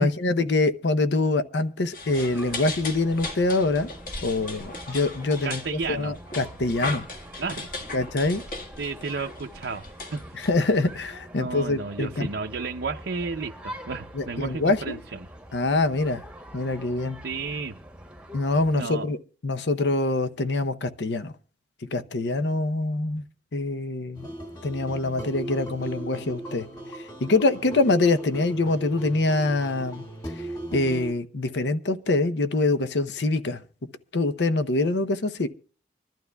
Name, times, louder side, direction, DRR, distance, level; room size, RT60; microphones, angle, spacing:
voice 1, 0.0-3.9 4.2-5.6 5.9-7.1 7.9-8.4 10.3-12.3 14.1-15.0 15.5-16.2 16.5-17.2 18.3-21.3 21.9-23.2 23.5-24.3 24.6-26.7 26.9-33.6 34.1-35.5, left 2 dB, 80° left, 0.7 m, -25 dB
sound 1, 1.9-10.9, left 3 dB, 50° left, 1.6 m, -37 dB
sound 2, 2.1-18.8, right 1 dB, 5° right, 1.0 m, -45 dB
voice 2, 5.4-6.1 7.4-7.7 8.8-9.8 10.1-10.5 11.4-15.0 17.2-17.8 18.7-19.1, right 4 dB, 80° right, 0.6 m, -32 dB
sound 3, 24.1-31.1, right 1 dB, 25° left, 2.5 m, -37 dB
25.5 x 12.0 x 2.3 m
head